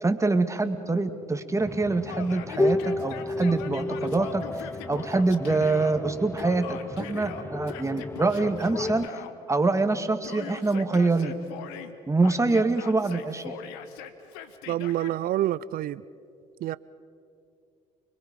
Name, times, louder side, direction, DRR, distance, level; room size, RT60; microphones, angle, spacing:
voice 1, 0.0-4.4 4.9-9.1 9.5-11.3 12.1-13.5, right 3 dB, 15° right, 2.1 m, -25 dB
sound 1, 1.6-9.1, left 2 dB, 15° left, 0.5 m, -32 dB
Yell, 2.1-5.9 6.4-9.3 10.2-11.9 12.2-15.1, left 8 dB, 80° left, 1.4 m, -41 dB
voice 2, 14.7-16.0 16.6-16.8, right 13 dB, 60° right, 0.5 m, -27 dB
30.0 x 22.5 x 5.4 m
hypercardioid pair, 65°, 17 cm